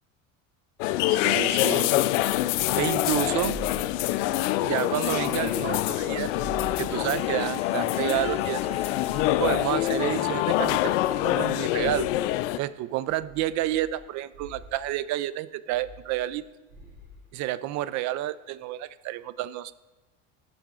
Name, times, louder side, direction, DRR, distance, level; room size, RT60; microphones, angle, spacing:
sound 1, 0.8-12.6, left 15 dB, 75° left, 0.5 m, -25 dB
voice 1, 1.1-1.9 2.8-3.6 4.6-6.3 6.8-8.7 9.4-12.1 12.6-16.4 17.3-19.7, right 14 dB, 50° right, 17 dB, 0.4 m, -30 dB
sound 2, 2.1-4.5 5.0-7.4 7.9-10.1 10.5-12.4 13.1-14.0 14.3-14.8 15.7-16.4 16.7-17.2, right 1 dB, 80° right, 3.4 m, -45 dB
Sink (filling or washing), 6.5-10.5, left 4 dB, 15° left, 1.1 m, -44 dB
11.5 x 6.8 x 3.7 m, 1.2 s
hypercardioid pair, 85°, 38 cm